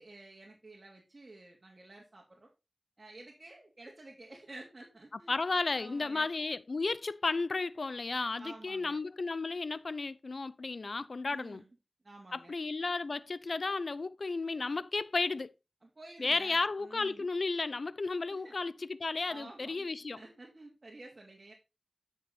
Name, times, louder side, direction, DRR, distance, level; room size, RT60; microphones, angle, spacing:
voice 1, 0.0-2.5 3.0-5.4 5.8-6.3 8.4-9.0 11.3-11.8 12.0-12.5 15.8-17.3 18.3-18.5 19.3-19.9 20.1-21.5, right 2 dB, 50° right, 2.6 m, -51 dB
voice 2, 5.3-11.6 12.3-15.5 16.2-20.2, left 3 dB, 75° left, 0.5 m, -33 dB
9.9 x 6.5 x 4.0 m
cardioid pair, 45°, 0 cm